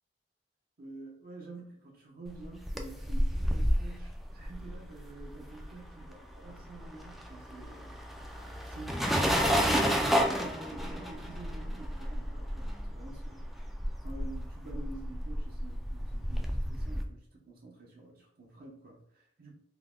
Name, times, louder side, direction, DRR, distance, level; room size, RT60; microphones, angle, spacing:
voice 1, 0.8-7.9 8.7-13.5 14.0-19.5, right 3 dB, 55° right, -2 dB, 0.8 m, -47 dB
sound 1, 2.4-6.0 6.3-17.0, equal, ahead, 0.3 m, -31 dB
3.4 x 2.1 x 3.6 m, 0.69 s
head